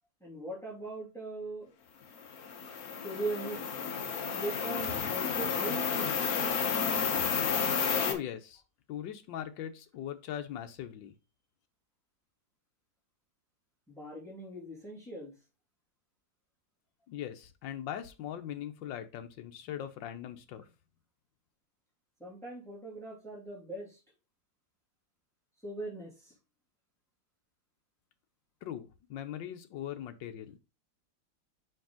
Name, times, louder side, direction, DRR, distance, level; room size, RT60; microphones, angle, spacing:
voice 1, 0.2-1.7 3.0-3.8 4.3-6.2 13.9-15.3 22.2-24.0 25.6-26.3, right 2 dB, ahead, -4 dB, 2.6 m, -40 dB
sound 1, 2.2-8.1, left 6 dB, 55° left, 1.3 m, -31 dB
voice 2, 8.0-8.6 8.9-11.1 17.1-20.7 28.6-30.6, left 10 dB, 80° left, 8 dB, 1.5 m, -40 dB
5.5 x 5.3 x 3.7 m, 0.29 s
omnidirectional pair, 2.0 m